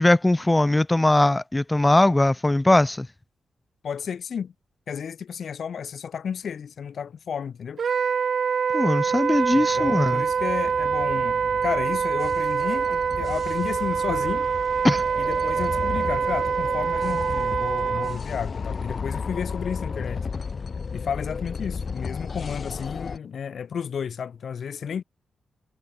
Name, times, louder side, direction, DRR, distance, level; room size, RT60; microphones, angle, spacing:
voice 1, 0.0-3.1 8.7-10.2 14.8-15.0, left 1 dB, 15° left, 1.1 m, -20 dB
voice 2, 3.8-4.5 4.9-7.8 9.5-14.5 15.2-20.3 20.9-25.0, left 7 dB, 70° left, 4.8 m, -32 dB
Wind instrument woodwind instrument, 7.8-18.2, right 6 dB, 65° right, 0.6 m, -25 dB
sound 1, 9.3-23.2, left 5 dB, 50° left, 2.7 m, -34 dB
wide cardioid pair, 105°, 0 cm